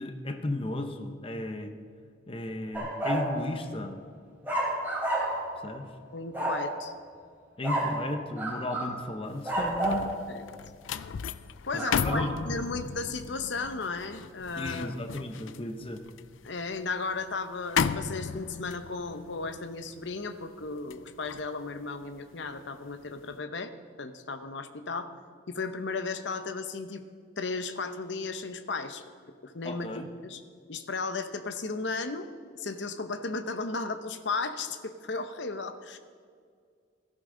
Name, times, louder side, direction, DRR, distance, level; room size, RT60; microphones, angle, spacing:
voice 1, 0.0-1.7 2.3-4.0 5.6-5.9 7.6-10.1 11.7-12.3 14.6-16.0 29.6-30.1, left 1 dB, 30° left, 7 dB, 0.8 m, -34 dB
sound 1, 2.7-3.3 4.4-5.5 6.3-6.7 7.6-8.0 8.4-8.9 9.4-10.1 11.8-12.3, right 1 dB, 10° right, 3.5 m, -30 dB
voice 2, 6.1-6.9 10.3-10.4 11.6-15.0 16.4-23.7 24.0-25.1 25.5-27.0 27.4-29.0 29.4-30.4 30.7-32.3 32.6-36.0, left 3 dB, 70° left, 10 dB, 0.8 m, -35 dB
sound 2, 9.3-22.7 23.1-23.3, left 7 dB, 90° left, 0.4 m, -36 dB
16.5 x 13.5 x 3.8 m, 2.1 s
head